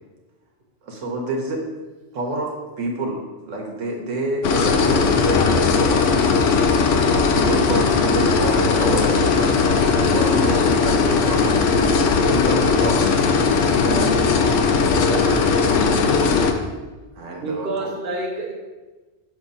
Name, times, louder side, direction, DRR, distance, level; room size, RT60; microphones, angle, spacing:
voice 1, 0.8-1.6 2.1-6.6 6.9-11.8 12.1-13.1 13.9-14.1 17.2-17.9, right 1 dB, 85° right, 0 dB, 1.2 m, -28 dB
sound 1, 4.4-16.5, left 4 dB, 85° left, 1.0 m, -18 dB
voice 2, 15.0-15.7 17.4-18.5, right 2 dB, 50° right, -2 dB, 0.8 m, -28 dB
6.4 x 3.1 x 5.3 m, 1.2 s
omnidirectional pair, 1.2 m